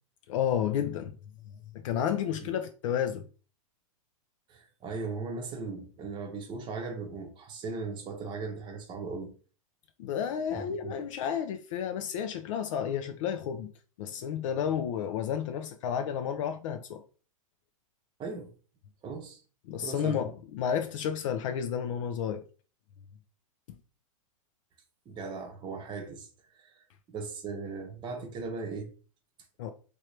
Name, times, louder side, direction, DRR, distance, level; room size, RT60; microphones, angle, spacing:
voice 1, 0.3-1.1 1.7-3.3 10.0-13.7 14.0-17.0 19.7-22.4 29.6-29.7, left 8 dB, 60° left, 0.4 m, -31 dB
voice 2, 4.5-9.3 10.5-11.0 18.2-18.5 19.0-19.4 19.8-20.2 25.1-28.9, right 4 dB, 25° right, 0.8 m, -38 dB
3.3 x 2.7 x 3.2 m
hypercardioid pair, 115°, 18 cm